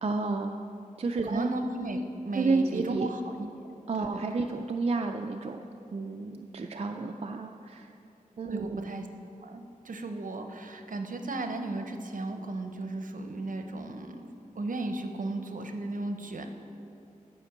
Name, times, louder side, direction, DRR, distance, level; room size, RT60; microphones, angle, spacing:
voice 1, 0.0-0.6 1.0-1.5 2.3-3.1 3.9-5.6 5.9-7.9 8.4-8.9, right 3 dB, 45° right, 3 dB, 0.4 m, -30 dB
voice 2, 1.2-3.5 4.0-4.5 8.5-9.1 9.4-14.3 14.5-16.5, right 2 dB, 70° right, 6 dB, 0.7 m, -35 dB
10.5 x 5.2 x 6.5 m, 2.7 s
wide cardioid pair, 95°, 14 cm